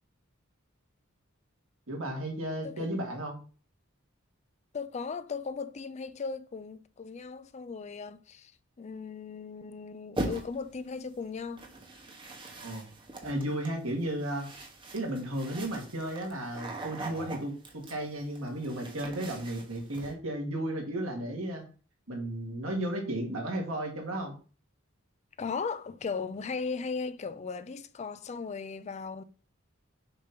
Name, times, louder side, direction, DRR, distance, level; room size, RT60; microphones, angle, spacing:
voice 1, 1.9-3.4 12.6-12.9 13.2-14.5 14.9-21.6 22.1-24.4, right 1 dB, 90° right, 2.0 m, -34 dB
voice 2, 4.7-8.5 8.8-11.6 25.4-29.2, left 5 dB, 35° left, 0.4 m, -37 dB
sound 1, 10.2-10.7 11.6-20.1, right 1 dB, 25° right, 1.1 m, -41 dB
6.8 x 2.9 x 5.2 m
head